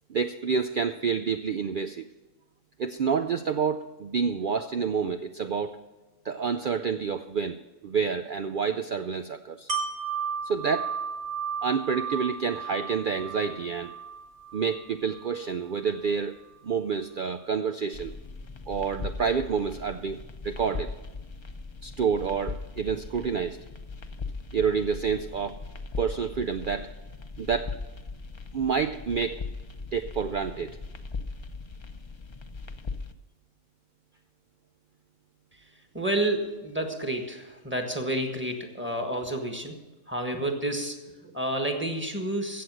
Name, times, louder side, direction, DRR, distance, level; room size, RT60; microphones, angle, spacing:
voice 1, 0.1-2.1 2.8-5.8 6.2-7.6 7.8-9.7 10.4-11.0 11.6-13.9 14.5-16.4 16.6-18.1 18.7-20.2 20.4-20.9 21.8-23.6 24.5-25.6 26.0-26.9 27.4-27.8 28.5-29.4 29.9-30.8, right 6 dB, 75° right, 9 dB, 0.4 m, -28 dB
Wind chime, 9.7-15.5 15.9-16.0, right 6 dB, 55° right, 1.8 m, -34 dB
sound 1, 17.9-33.1, left 4 dB, 40° left, 0.4 m, -39 dB
voice 2, 35.5-42.6, right 1 dB, 10° right, 3 dB, 1.5 m, -30 dB
15.5 x 7.7 x 6.2 m, 1.2 s
omnidirectional pair, 1.4 m